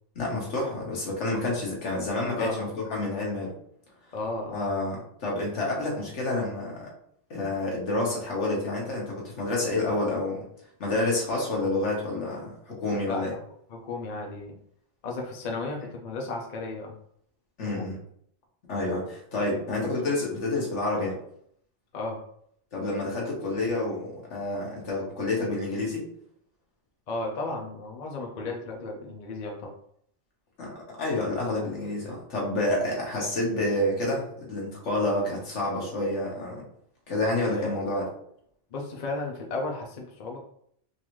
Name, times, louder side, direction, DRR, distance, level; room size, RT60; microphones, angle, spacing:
voice 1, 0.1-3.5 4.5-6.9 7.3-10.4 10.8-13.3 17.6-18.0 18.7-21.2 22.7-26.1 30.6-36.6 37.1-38.1, left 2 dB, 75° left, -2 dB, 1.4 m, -29 dB
voice 2, 4.1-4.7 13.1-13.4 13.7-14.6 15.0-16.9 17.8-17.9 21.9-22.2 27.1-29.7 37.4-37.8 38.7-40.4, left 2 dB, 45° left, 0 dB, 0.6 m, -34 dB
3.9 x 2.6 x 3.0 m, 0.67 s
omnidirectional pair, 1.2 m